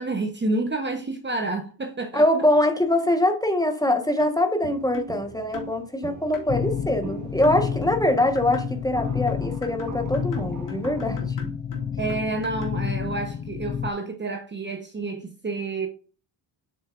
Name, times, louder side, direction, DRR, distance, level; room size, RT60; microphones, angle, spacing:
voice 1, 0.0-2.2 12.0-15.9, right 2 dB, 25° right, 1.0 m, -29 dB
voice 2, 2.1-11.4, left 1 dB, 10° left, 1.3 m, -23 dB
sound 1, 4.2-4.4 4.9-5.2 5.5-5.8 6.3-6.5 7.4-8.7 9.3-12.8, left 3 dB, 40° left, 2.3 m, -39 dB
Walk footsteps, 4.6-11.3, right 4 dB, 40° right, 1.8 m, -40 dB
sound 2, 6.5-13.9, left 7 dB, 25° left, 0.4 m, -30 dB
7.9 x 6.5 x 2.5 m
cardioid pair, 120°, 46 cm